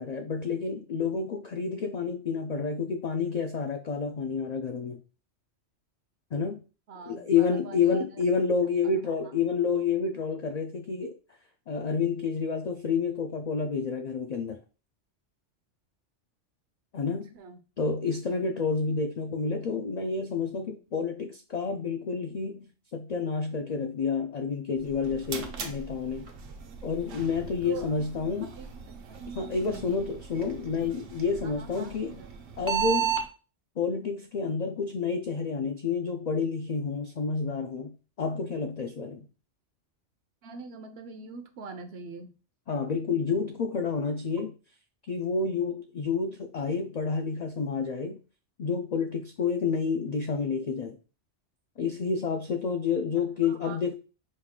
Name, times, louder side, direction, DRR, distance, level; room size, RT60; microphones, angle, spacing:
voice 1, 0.0-5.0 6.3-6.6 7.1-11.1 11.7-14.6 16.9-17.3 17.8-26.3 26.8-28.5 29.3-32.2 32.6-33.2 33.8-39.3 42.7-44.6 45.1-48.2 48.6-51.0 51.8-53.9, left 5 dB, 65° left, 5 dB, 0.4 m, -29 dB
voice 2, 6.9-8.0 17.1-17.6 27.6-27.9 28.4-28.7 29.7-30.0 31.4-32.3 40.4-42.3 53.5-53.8, right 4 dB, 65° right, 9 dB, 0.8 m, -43 dB
sound 1, 24.8-33.3, right 8 dB, 85° right, 1.1 m, -36 dB
5.3 x 2.3 x 3.6 m, 0.34 s
omnidirectional pair, 1.2 m